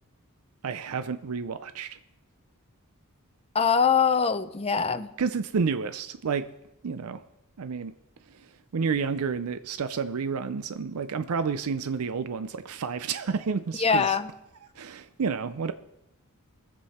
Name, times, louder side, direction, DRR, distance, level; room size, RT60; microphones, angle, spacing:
voice 1, 0.6-2.0 5.2-6.4 6.8-7.2 7.6-7.9 8.7-14.2 14.8-15.7, right 5 dB, 75° right, 11 dB, 0.5 m, -30 dB
voice 2, 3.5-5.1 13.7-14.3, left 6 dB, 25° left, 9 dB, 0.6 m, -23 dB
21.5 x 7.6 x 4.2 m, 0.90 s
head